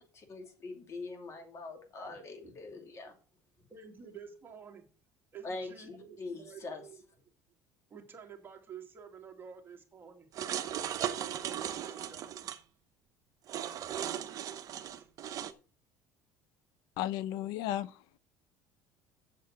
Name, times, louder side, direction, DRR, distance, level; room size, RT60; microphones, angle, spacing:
voice 1, 0.2-3.2 5.4-6.8, left 3 dB, 40° left, 2.9 m, -43 dB
voice 2, 2.0-2.8 3.7-4.9 5.3-7.0 7.9-10.3 11.2-12.4 14.0-15.1, right 6 dB, 30° right, 2.3 m, -51 dB
sound 1, 10.3-12.6 13.5-15.5, right 10 dB, 50° right, 1.0 m, -37 dB
voice 3, 17.0-18.0, left 12 dB, 75° left, 0.6 m, -34 dB
7.5 x 7.1 x 6.1 m
supercardioid pair, 100°, 7 cm